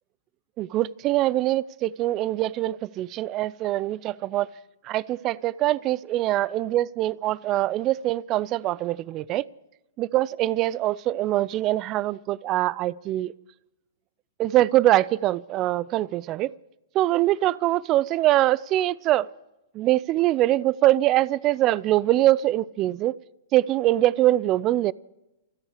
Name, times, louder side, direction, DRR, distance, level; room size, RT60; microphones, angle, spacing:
voice 1, 0.6-4.5 4.8-9.4 10.0-13.3 14.4-16.5 16.9-19.3 19.7-23.2 23.5-24.9, right 15 dB, 35° right, 0.5 m, -23 dB
28.5 x 10.0 x 4.9 m
hypercardioid pair, 125°, 0 cm